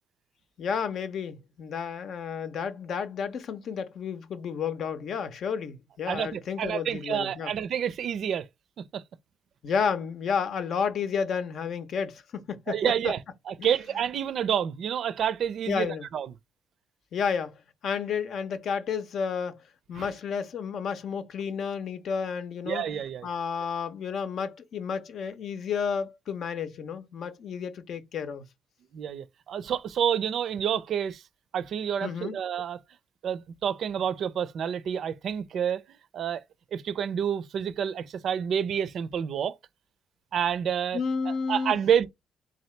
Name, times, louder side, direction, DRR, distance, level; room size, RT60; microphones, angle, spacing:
voice 1, 0.6-7.5 9.6-12.8 13.0-13.1 13.6-13.7 15.7-16.1 17.1-17.6 17.8-19.6 19.9-22.8 23.2-28.4 32.0-32.4 40.9-41.8, left 6 dB, 65° left, 0.7 m, -31 dB
voice 2, 6.1-8.5 8.9-9.0 12.7-13.2 13.5-16.3 19.9-20.1 22.7-23.3 28.9-31.2 31.5-32.8 33.2-35.8 36.1-36.4 36.7-39.6 40.3-41.0 41.3-42.1, right 8 dB, 65° right, 0.4 m, -28 dB
3.7 x 2.8 x 3.2 m
cardioid pair, 90°, 0 cm